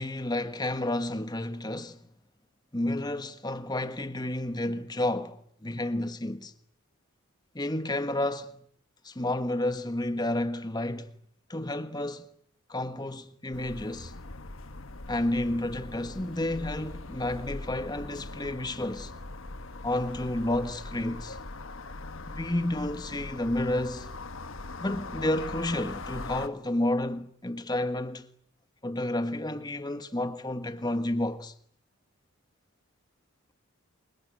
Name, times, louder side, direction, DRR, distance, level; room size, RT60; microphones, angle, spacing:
voice 1, 0.0-2.0 2.7-6.5 7.5-8.6 9.0-11.1 11.5-12.3 12.7-14.1 15.1-19.1 19.8-21.4 22.3-24.1 24.8-28.3 28.8-31.5, left 1 dB, 20° left, 1.4 m, -31 dB
sound 1, 13.5-26.5, left 2 dB, 60° left, 1.3 m, -41 dB
28.0 x 24.5 x 7.9 m
head